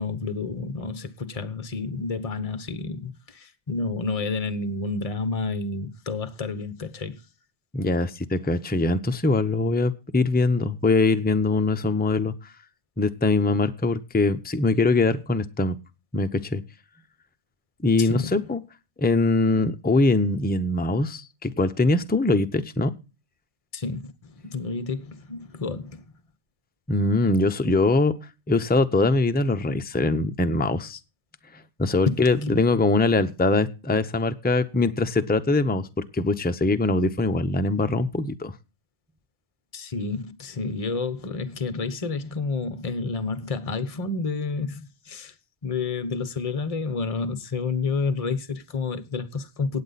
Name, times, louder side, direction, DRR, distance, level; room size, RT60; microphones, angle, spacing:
voice 1, 0.0-7.2 18.0-18.4 23.7-26.1 32.1-32.6 39.7-45.3 45.6-49.8, left 4 dB, 30° left, 1.1 m, -30 dB
voice 2, 7.7-12.3 13.0-15.8 16.1-16.6 17.8-18.6 19.0-22.9 26.9-28.1 28.5-31.0 31.8-35.9 36.1-38.5, left 3 dB, 10° left, 0.7 m, -22 dB
18.0 x 7.9 x 4.1 m
omnidirectional pair, 1.2 m